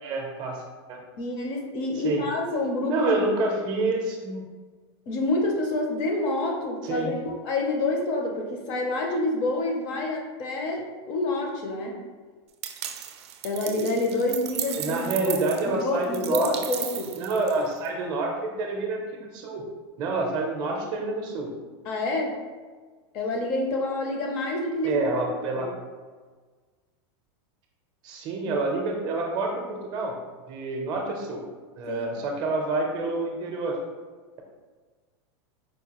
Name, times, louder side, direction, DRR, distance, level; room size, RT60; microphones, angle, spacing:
voice 1, 0.0-1.0 2.0-2.2 2.9-4.5 6.8-7.1 14.8-16.6 17.2-19.7 20.0-21.5 24.8-25.7 28.0-30.2 30.5-31.4 31.8-33.8, right 3 dB, 30° right, 1 dB, 0.5 m, -28 dB
voice 2, 1.2-3.3 5.1-12.0 13.4-15.4 15.6-17.1 21.9-22.4 23.1-25.1 25.6-25.7 31.9-32.2, left 2 dB, 35° left, 1 dB, 0.5 m, -28 dB
sound 1, 12.6-17.9, right 10 dB, 85° right, 0.4 m, -35 dB
4.6 x 2.3 x 2.9 m, 1.4 s
supercardioid pair, 160°, 14 cm